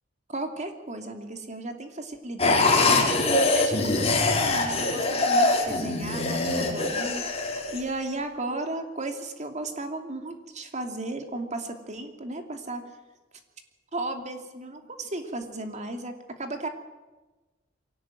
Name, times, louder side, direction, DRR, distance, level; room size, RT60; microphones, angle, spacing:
voice 1, 0.3-12.9 13.9-16.1 16.4-16.7, right 2 dB, 40° right, 5 dB, 2.8 m, -35 dB
sound 1, 2.4-7.8, left 2 dB, 35° left, 5.1 m, -23 dB
23.5 x 17.5 x 9.1 m, 1.2 s
head